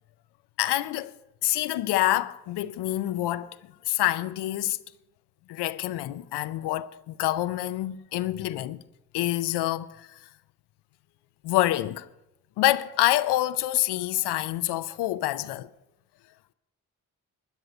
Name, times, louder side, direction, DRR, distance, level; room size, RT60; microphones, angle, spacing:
voice 1, 0.6-1.1 1.4-3.5 3.9-4.8 5.5-8.8 9.1-10.1 11.4-12.1 12.6-15.7, left 15 dB, 90° left, 0.6 m, -26 dB
12.5 x 10.0 x 6.5 m
supercardioid pair, 55°, 39 cm